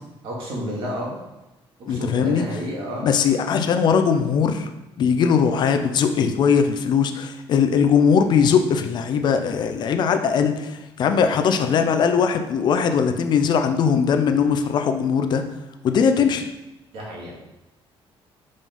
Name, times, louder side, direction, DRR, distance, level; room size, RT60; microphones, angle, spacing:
voice 1, 0.2-1.2 1.9-3.1 16.9-17.3, equal, 70° right, -4 dB, 2.7 m, -30 dB
voice 2, 1.9-2.5 3.0-4.7 5.0-15.4 15.8-16.5, left 6 dB, 50° left, 7 dB, 0.6 m, -20 dB
5.5 x 5.2 x 5.5 m, 1.0 s
cardioid pair, 160°, 10 cm